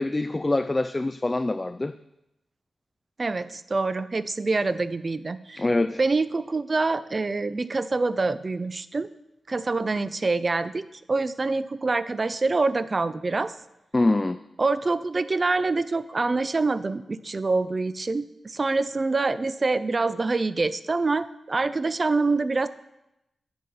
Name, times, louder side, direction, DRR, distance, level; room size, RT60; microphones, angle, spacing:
voice 1, 0.0-1.9 5.6-6.0 13.9-14.4, left 2 dB, 30° left, 10 dB, 0.3 m, -24 dB
voice 2, 3.2-5.6 6.0-9.1 9.5-13.5 14.6-22.7, right 3 dB, 45° right, 15 dB, 0.4 m, -26 dB
9.5 x 3.9 x 5.8 m, 0.88 s
cardioid pair, 45°, 0 cm